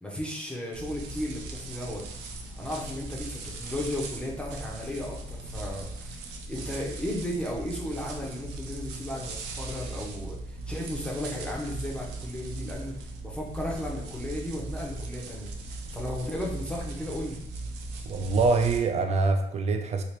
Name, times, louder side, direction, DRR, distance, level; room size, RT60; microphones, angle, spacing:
voice 1, 0.0-2.1 2.6-15.5 15.9-17.4, left 1 dB, 5° left, -3 dB, 0.6 m, -35 dB
sound 1, 0.7-18.8, right 2 dB, 90° right, 0.5 m, -38 dB
voice 2, 18.1-20.0, right 3 dB, 40° right, 5 dB, 0.5 m, -24 dB
2.8 x 2.8 x 3.2 m, 0.74 s
cardioid pair, 110°, 17 cm